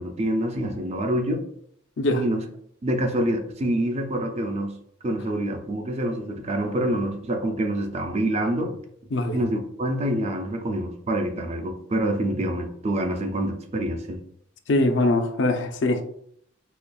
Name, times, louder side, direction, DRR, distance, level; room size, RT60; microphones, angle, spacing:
voice 1, 0.0-1.4 2.1-2.4 2.8-4.7 5.0-8.8 9.3-14.2, right 1 dB, 35° right, 5 dB, 0.5 m, -26 dB
voice 2, 14.7-16.0, left 2 dB, 60° left, 5 dB, 0.5 m, -22 dB
4.2 x 2.9 x 2.3 m, 0.68 s
head